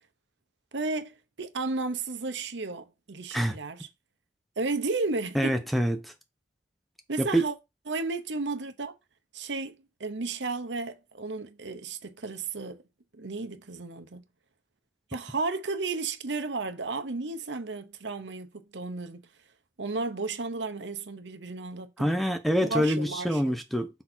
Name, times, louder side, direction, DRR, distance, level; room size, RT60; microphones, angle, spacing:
voice 1, 0.7-3.9 4.6-5.6 7.1-7.5 7.9-8.9 9.3-12.8 13.1-14.2 15.1-19.2 19.8-22.1 22.6-23.5, right 3 dB, 85° right, 0.9 m, -33 dB
voice 2, 5.3-6.1 7.2-7.4 22.0-23.9, equal, ahead, 0.7 m, -26 dB
6.0 x 3.8 x 4.4 m
head